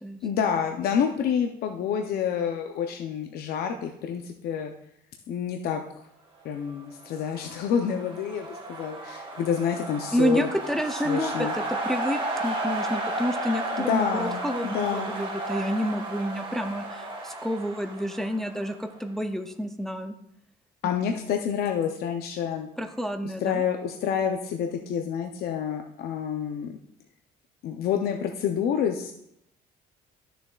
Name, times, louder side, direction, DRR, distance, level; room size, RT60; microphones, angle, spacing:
voice 1, 0.2-4.7 5.3-5.8 6.4-10.5 11.0-11.5 13.8-15.2 20.8-22.7 23.4-26.7 27.6-29.1, left 7 dB, 65° left, 4 dB, 0.6 m, -28 dB
sound 1, 7.1-19.0, right 2 dB, 30° right, 1.7 m, -33 dB
voice 2, 10.1-20.2 22.8-23.6, equal, ahead, 6 dB, 0.5 m, -29 dB
11.5 x 6.7 x 2.4 m, 0.76 s
cardioid pair, 110°, 17 cm